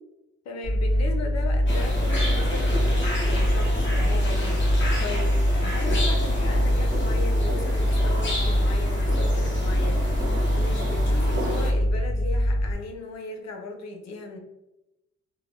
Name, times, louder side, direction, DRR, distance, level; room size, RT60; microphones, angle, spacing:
voice 1, 0.4-14.4, left 3 dB, 60° left, 4 dB, 0.6 m, -37 dB
sound 1, 0.6-12.7, equal, 20° left, 1.1 m, -23 dB
sound 2, 1.7-11.7, equal, 40° left, 1.3 m, -32 dB
3.0 x 2.1 x 2.6 m, 0.94 s
cardioid pair, 90°, 30 cm